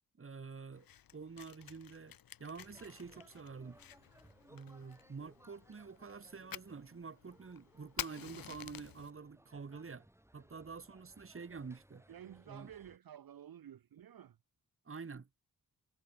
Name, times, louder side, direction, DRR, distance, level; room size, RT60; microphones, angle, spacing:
voice 1, 0.2-3.8 4.5-10.1 10.3-12.0 12.5-12.7 14.8-15.3, right 5 dB, 35° right, 1.3 m, -48 dB
Fire, 0.7-9.1, left 10 dB, 65° left, 0.6 m, -50 dB
sound 1, 2.5-13.0, right 1 dB, 5° right, 5.6 m, -64 dB
voice 2, 12.1-14.4, right 10 dB, 70° right, 0.7 m, -52 dB
wide cardioid pair, 140°, 37 cm